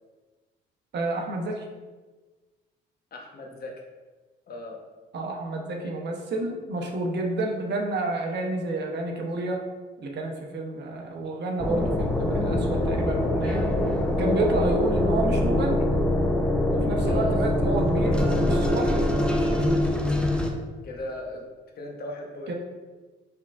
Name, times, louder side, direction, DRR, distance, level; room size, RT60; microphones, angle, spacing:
voice 1, 0.9-1.7 5.1-9.6 10.0-13.7 14.1-15.9 16.7-19.1 19.5-19.9 22.5-22.6, right 2 dB, 60° right, 1 dB, 0.8 m, -30 dB
voice 2, 3.1-3.7 4.5-4.8 5.8-5.9 17.0-17.4 20.8-21.5 21.8-22.5, left 2 dB, 50° left, 0 dB, 0.9 m, -37 dB
sound 1, 11.6-20.5, left 1 dB, 5° left, 0.5 m, -24 dB
4.5 x 3.6 x 2.4 m, 1.3 s
cardioid pair, 90°, 20 cm